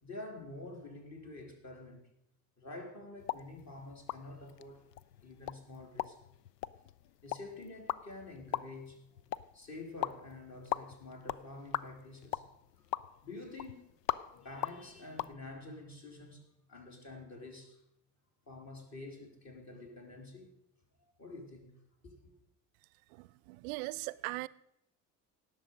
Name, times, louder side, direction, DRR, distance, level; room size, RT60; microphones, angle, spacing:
voice 1, 0.0-2.0 2.6-4.9 5.2-6.2 7.2-9.0 9.5-12.4 13.2-13.9 14.3-16.4 16.7-17.8 18.5-20.5 21.2-21.8 22.0-22.3, left 2 dB, 35° left, 3.3 m, -48 dB
sound 1, 3.2-15.3, left 12 dB, 80° left, 0.5 m, -41 dB
voice 2, 23.1-24.5, right 22 dB, 60° right, 0.6 m, -39 dB
18.0 x 6.6 x 5.2 m
figure-of-eight pair, 60°, 48 cm